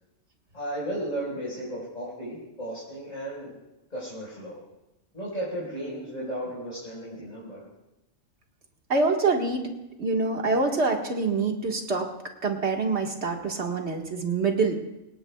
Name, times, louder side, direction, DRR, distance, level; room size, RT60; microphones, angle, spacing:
voice 1, 0.5-3.6 3.9-4.6 5.1-7.6, right 1 dB, 30° left, -8 dB, 5.1 m, -34 dB
voice 2, 8.9-9.7 10.0-12.1 12.4-14.7, right 3 dB, 55° right, 2 dB, 2.0 m, -25 dB
26.0 x 17.5 x 2.3 m, 0.94 s
omnidirectional pair, 1.4 m